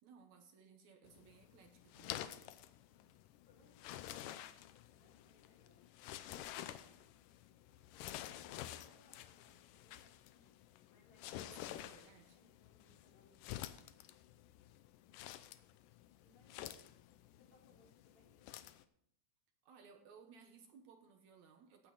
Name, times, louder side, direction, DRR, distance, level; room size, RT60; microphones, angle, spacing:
voice 1, 0.0-2.3 11.3-12.4 19.6-21.9, right 6 dB, 65° right, 4 dB, 2.3 m, -62 dB
voice 2, 0.6-0.9 2.9-3.2 3.5-7.2 8.1-10.6 10.9-13.9 15.0-15.5 16.2-16.7 17.3-18.7, left 2 dB, 60° left, -2 dB, 4.1 m, -71 dB
sound 1, 1.1-18.8, left 13 dB, 90° left, 2.2 m, -51 dB
15.0 x 8.9 x 4.0 m, 0.69 s
omnidirectional pair, 3.8 m